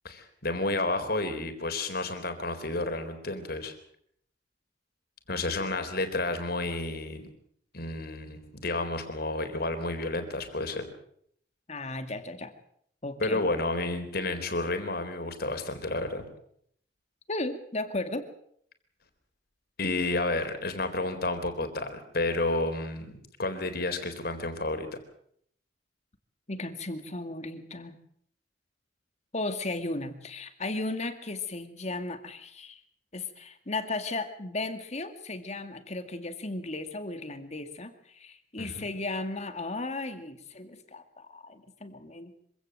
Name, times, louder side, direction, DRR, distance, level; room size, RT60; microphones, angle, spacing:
voice 1, 0.0-3.7 5.3-7.3 7.7-10.8 13.2-16.3 19.8-24.9 38.6-38.9, left 2 dB, 55° left, 7 dB, 3.9 m, -31 dB
voice 2, 11.7-12.5 13.0-13.4 17.3-18.3 26.5-28.0 29.3-32.8 33.1-42.3, left 2 dB, 40° left, 8 dB, 2.2 m, -35 dB
25.5 x 17.0 x 7.7 m, 0.68 s
head